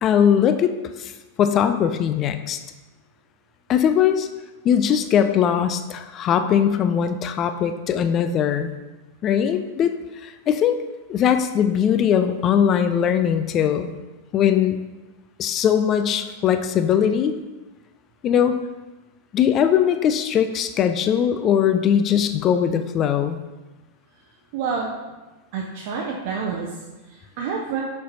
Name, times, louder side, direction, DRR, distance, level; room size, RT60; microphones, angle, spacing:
voice 1, 0.0-0.7 1.0-1.1 1.4-2.6 3.7-4.3 4.6-8.7 9.2-9.9 10.2-10.8 11.1-13.9 14.3-14.8 15.4-17.4 18.2-18.6 19.3-23.4, left 8 dB, 30° left, 9 dB, 0.4 m, -20 dB
voice 2, 24.5-24.9 25.5-26.8 27.1-27.8, right 6 dB, 45° right, -2 dB, 0.7 m, -28 dB
6.2 x 5.8 x 2.7 m, 1.1 s
figure-of-eight pair, 90°, 0 cm